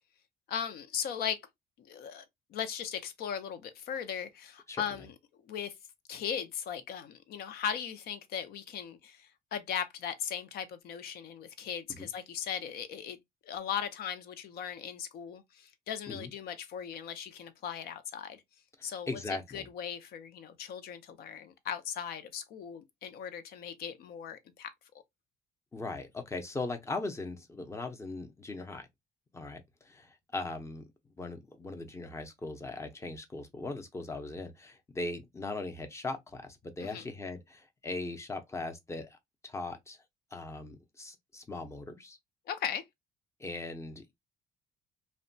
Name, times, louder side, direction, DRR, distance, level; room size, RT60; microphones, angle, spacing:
voice 1, 0.5-1.4 1.8-2.2 2.5-5.1 5.5-5.7 6.1-13.2 13.4-18.4 18.8-19.2 19.5-24.7 36.8-37.0 42.5-42.8, left 8 dB, 65° left, 0.6 m, -38 dB
voice 2, 18.8-19.7 25.7-28.9 29.3-30.9 31.2-39.2 39.4-40.0 40.3-42.2 43.4-44.1, left 2 dB, 15° left, 0.6 m, -39 dB
2.7 x 2.2 x 2.6 m
cardioid pair, 110°, 17 cm